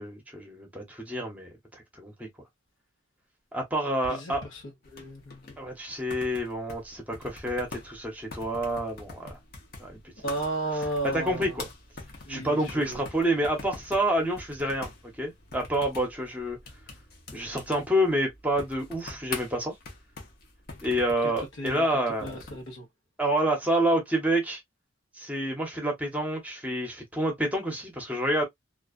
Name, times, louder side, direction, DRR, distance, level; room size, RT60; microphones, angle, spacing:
voice 1, 0.0-1.5 2.0-2.3 3.5-4.4 5.6-9.4 9.8-10.0 11.1-11.7 12.3-14.9 15.2-16.6 17.3-19.7 20.8-22.4 23.2-24.6 25.2-28.4, right 1 dB, 10° right, 0.9 m, -28 dB
voice 2, 4.0-5.5 10.2-11.7 12.2-13.0 21.2-21.3 21.6-21.8 22.2-22.9, right 1 dB, 75° left, 1.1 m, -34 dB
sound 1, 4.8-22.7, left 3 dB, 50° left, 0.8 m, -45 dB
2.5 x 2.3 x 2.4 m
head